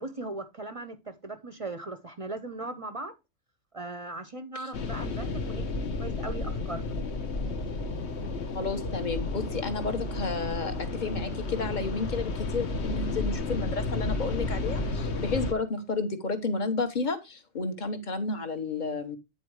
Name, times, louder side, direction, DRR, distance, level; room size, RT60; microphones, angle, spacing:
voice 1, 0.0-3.2 3.7-7.0, right 2 dB, 35° right, 0.7 m, -38 dB
sound 1, 4.7-15.5, left 3 dB, 60° left, 1.3 m, -32 dB
voice 2, 8.5-19.2, left 3 dB, 40° left, 1.2 m, -32 dB
9.4 x 4.3 x 4.7 m
omnidirectional pair, 1.3 m